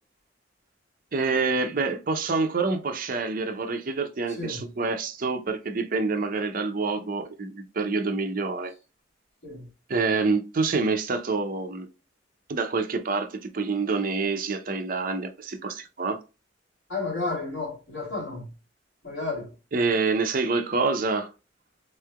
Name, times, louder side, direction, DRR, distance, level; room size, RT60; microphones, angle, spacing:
voice 1, 1.1-8.7 9.9-11.9 12.5-16.2 19.7-21.3, right 4 dB, 45° right, 0.6 m, -27 dB
voice 2, 4.3-4.7 9.4-9.7 16.9-18.5 19.0-19.5, left 3 dB, 70° left, 2.1 m, -32 dB
3.6 x 3.2 x 2.3 m
head